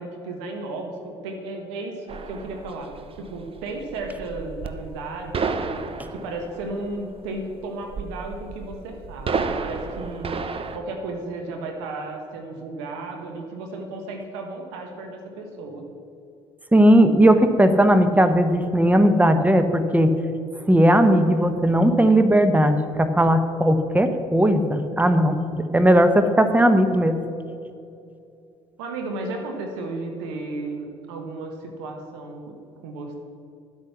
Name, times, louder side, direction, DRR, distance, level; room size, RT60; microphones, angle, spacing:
voice 1, 0.0-5.8 6.1-10.3 10.7-15.9 28.8-32.5 32.8-33.1, right 2 dB, 80° right, 3 dB, 1.3 m, -34 dB
sound 1, 2.1-10.8, right 4 dB, 40° right, 0.9 m, -32 dB
voice 2, 16.7-20.1 20.7-27.2, right 1 dB, 10° right, 9 dB, 1.0 m, -17 dB
11.5 x 8.2 x 5.8 m, 2.5 s
hypercardioid pair, 55°, 14 cm